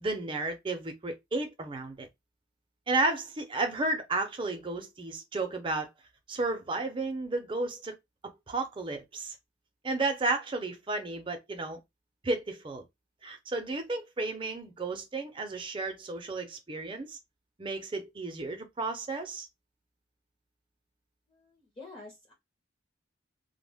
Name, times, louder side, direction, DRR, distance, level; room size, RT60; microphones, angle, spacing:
voice 1, 0.0-2.1 2.9-5.9 6.3-7.9 8.2-9.3 9.8-11.8 12.2-12.9 13.2-17.2 17.6-19.5, right 2 dB, 25° right, 0.5 m, -33 dB
voice 2, 21.3-22.3, left 3 dB, 25° left, 0.8 m, -48 dB
2.1 x 2.0 x 3.4 m
head